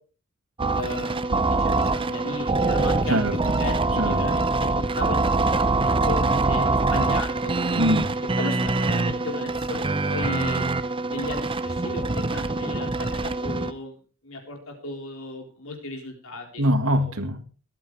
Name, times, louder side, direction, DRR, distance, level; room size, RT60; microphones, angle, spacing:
sound 1, 0.6-13.7, right 3 dB, 25° right, 0.7 m, -24 dB
voice 1, 0.7-3.2 3.6-5.2 6.1-7.5 8.4-10.7 11.1-14.0 14.2-16.6 16.9-17.1, left 2 dB, 65° left, 4.1 m, -35 dB
voice 2, 7.8-8.1 16.6-17.4, equal, 65° right, 1.9 m, -23 dB
23.5 x 9.0 x 3.3 m
head